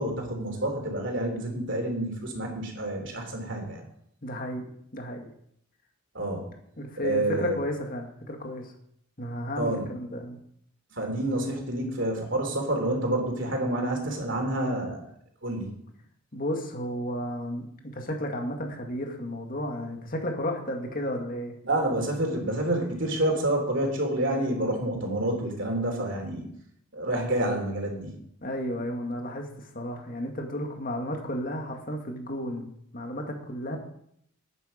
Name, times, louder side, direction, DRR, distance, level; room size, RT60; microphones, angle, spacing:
voice 1, 0.0-3.8 6.2-6.5 7.0-7.6 9.6-9.9 11.0-15.0 15.4-15.7 21.6-26.5 26.9-28.1, right 1 dB, 60° right, 2 dB, 3.3 m, -28 dB
voice 2, 4.2-5.3 6.8-8.7 9.2-10.4 16.3-21.6 28.4-33.8, equal, 40° left, 2 dB, 2.0 m, -33 dB
11.5 x 9.3 x 5.2 m, 0.72 s
head